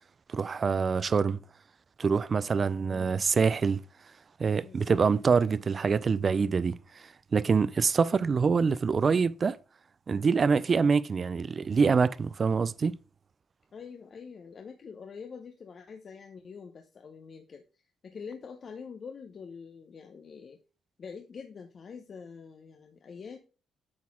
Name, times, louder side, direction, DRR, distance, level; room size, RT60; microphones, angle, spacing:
voice 1, 0.3-1.4 2.0-3.8 4.4-6.8 7.3-9.6 10.1-12.9, right 5 dB, 40° right, 0.4 m, -25 dB
voice 2, 2.8-3.2 4.6-5.0 13.7-20.6 21.0-23.4, left 6 dB, 50° left, 0.8 m, -45 dB
8.5 x 4.2 x 3.6 m
cardioid pair, 90°, 0 cm